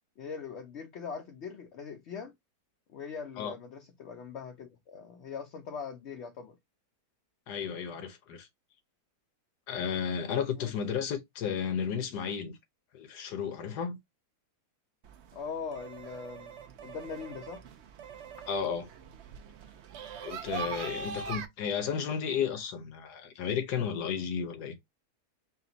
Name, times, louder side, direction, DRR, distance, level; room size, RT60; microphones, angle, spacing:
voice 1, 0.2-2.3 2.9-6.6 10.6-10.7 15.3-17.6 20.6-21.0, left 6 dB, 60° left, 0.7 m, -41 dB
voice 2, 7.5-8.5 9.7-12.6 12.9-14.0 18.5-18.9 20.2-24.8, left 7 dB, 80° left, 1.5 m, -33 dB
sound 1, 15.0-21.5, right 6 dB, 60° right, 0.7 m, -42 dB
4.3 x 2.2 x 3.9 m
omnidirectional pair, 1.7 m